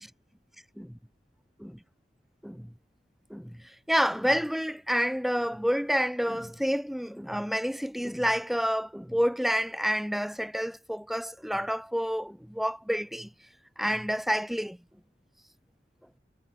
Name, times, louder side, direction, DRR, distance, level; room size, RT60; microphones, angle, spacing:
voice 1, 3.3-3.6 3.9-13.3 13.8-14.8, equal, ahead, 1.1 m, -29 dB
head